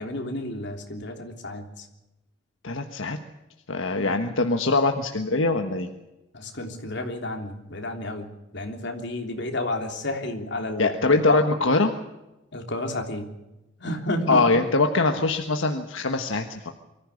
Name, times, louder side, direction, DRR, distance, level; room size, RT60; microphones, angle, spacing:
voice 1, 0.0-1.9 4.0-4.1 6.3-8.3 8.5-11.4 12.5-13.3 13.8-14.4, left 1 dB, 60° left, 3 dB, 3.4 m, -31 dB
voice 2, 2.6-3.2 3.7-5.9 10.8-11.9 14.3-16.7, left 3 dB, 85° left, 5 dB, 1.4 m, -23 dB
24.0 x 15.0 x 8.5 m, 0.98 s
head